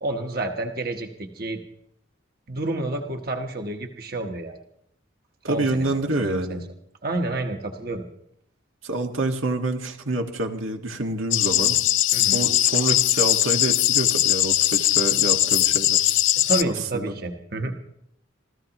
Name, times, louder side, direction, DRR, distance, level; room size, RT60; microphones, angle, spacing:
voice 1, 0.0-1.6 2.5-4.6 5.4-6.6 7.0-8.0 12.1-12.5 16.4-17.8, right 2 dB, 50° right, 4 dB, 1.2 m, -29 dB
voice 2, 5.4-6.6 8.8-11.8 12.3-16.4 16.9-17.1, right 2 dB, 90° right, 3 dB, 1.6 m, -27 dB
sound 1, 11.3-16.6, left 13 dB, 75° left, 0.6 m, -20 dB
27.5 x 14.5 x 3.0 m, 0.72 s
head